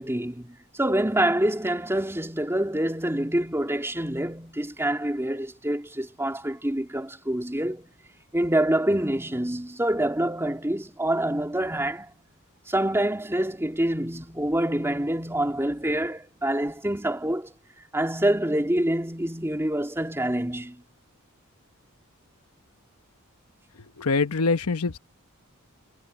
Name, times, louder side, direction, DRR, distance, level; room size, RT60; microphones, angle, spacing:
voice 1, 0.0-7.9 8.3-12.1 12.7-17.5 17.9-20.8, right 1 dB, 10° right, 2.7 m, -26 dB
voice 2, 24.0-25.0, left 4 dB, 85° left, 1.0 m, -24 dB
head